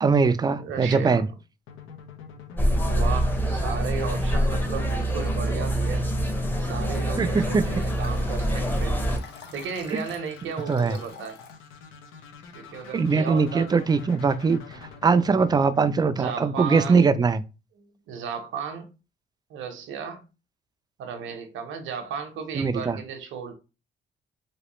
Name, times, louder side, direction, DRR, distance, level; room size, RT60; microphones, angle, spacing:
voice 1, 0.0-1.3 7.2-7.6 9.9-10.0 10.7-11.0 12.9-14.6 15.0-17.4 22.5-23.0, right 5 dB, 20° right, 0.3 m, -21 dB
voice 2, 0.6-1.2 2.9-6.1 6.6-9.0 9.5-11.4 12.5-13.7 16.1-17.0 18.1-18.9 19.5-20.2 21.0-23.5, right 6 dB, 80° right, 0.8 m, -34 dB
sound 1, 1.7-16.6, left 5 dB, 85° left, 0.7 m, -45 dB
sound 2, 2.6-9.2, equal, 10° left, 0.7 m, -25 dB
Liquid, 7.4-11.6 12.1-12.2, left 5 dB, 60° left, 0.9 m, -48 dB
3.1 x 3.0 x 3.0 m
cardioid pair, 90°, 20 cm